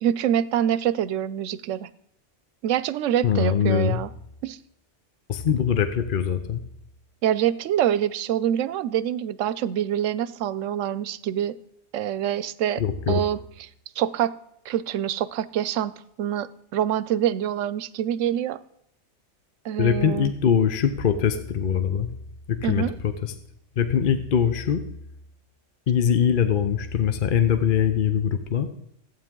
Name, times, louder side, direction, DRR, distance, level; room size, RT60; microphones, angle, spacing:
voice 1, 0.0-1.9 2.6-4.1 4.4-4.6 7.2-11.6 11.9-12.8 13.1-13.7 14.0-14.3 14.6-18.6 19.6-20.3 22.6-23.0, right 10 dB, 90° right, 17 dB, 0.9 m, -25 dB
voice 2, 3.2-4.0 5.3-6.6 12.8-13.2 19.8-22.1 22.5-23.3 23.8-24.8 25.9-28.7, left 8 dB, 50° left, 9 dB, 0.8 m, -22 dB
14.5 x 8.9 x 3.7 m, 0.76 s
omnidirectional pair, 1.2 m